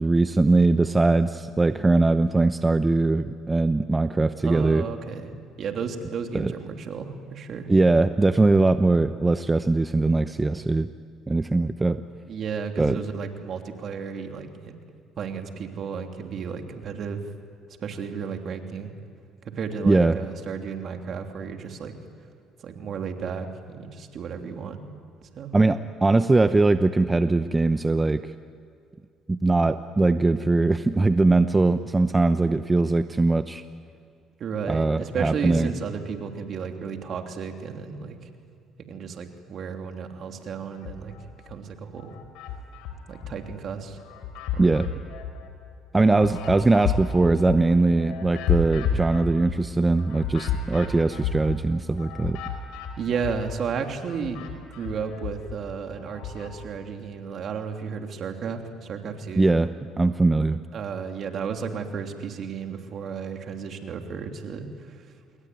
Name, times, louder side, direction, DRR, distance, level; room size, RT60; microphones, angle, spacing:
voice 1, 0.0-4.8 6.3-6.5 7.7-10.9 11.3-12.0 12.8-13.0 19.8-20.2 25.5-28.2 29.3-33.6 34.7-35.7 44.6-44.9 45.9-52.4 59.4-59.7 60.0-60.6, right 3 dB, 20° right, 10 dB, 0.8 m, -21 dB
voice 2, 4.4-5.3 5.6-7.7 12.3-14.8 15.2-17.2 17.8-18.9 19.4-21.9 22.6-24.8 25.2-25.5 34.4-38.3 38.8-41.1 41.4-42.2 43.1-44.1 44.5-44.7 53.0-59.5 60.7-65.0, right 6 dB, 55° right, 4 dB, 3.2 m, -33 dB
sound 1, 40.7-41.5 42.0-43.6 44.0-53.7 54.0-56.6, left 6 dB, 80° left, 4.5 m, -32 dB
28.0 x 22.0 x 9.5 m, 2.3 s
supercardioid pair, 75°, 0 cm